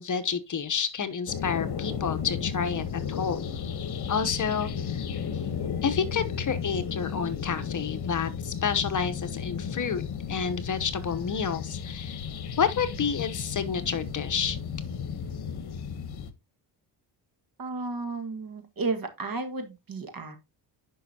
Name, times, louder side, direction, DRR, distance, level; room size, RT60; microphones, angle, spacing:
voice 1, 0.0-3.5 4.1-5.0 5.3-5.4 5.8-10.0 10.3-12.2 12.6-14.6, left 6 dB, 45° left, 1.0 m, -29 dB
sound 1, 1.3-16.3, left 7 dB, 60° left, 1.1 m, -34 dB
voice 2, 17.6-20.4, right 3 dB, 50° right, 1.8 m, -33 dB
10.5 x 5.4 x 2.8 m
cardioid pair, 100°, 44 cm